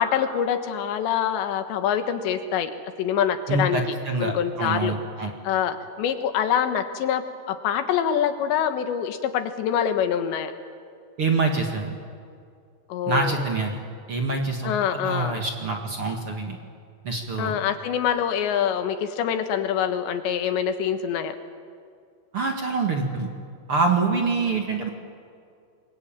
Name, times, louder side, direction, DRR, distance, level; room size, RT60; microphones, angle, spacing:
voice 1, 0.0-2.7 3.0-3.8 4.2-5.0 5.4-10.5 12.9-13.5 14.6-15.4 17.4-21.4, left 9 dB, 80° left, 8 dB, 3.6 m, -25 dB
voice 2, 3.5-4.3 4.6-5.3 11.2-11.9 13.1-13.7 14.1-16.6 17.0-17.5 22.3-23.3 23.7-24.9, right 3 dB, 45° right, 2 dB, 1.9 m, -25 dB
28.5 x 22.5 x 9.0 m, 2.3 s
omnidirectional pair, 5.2 m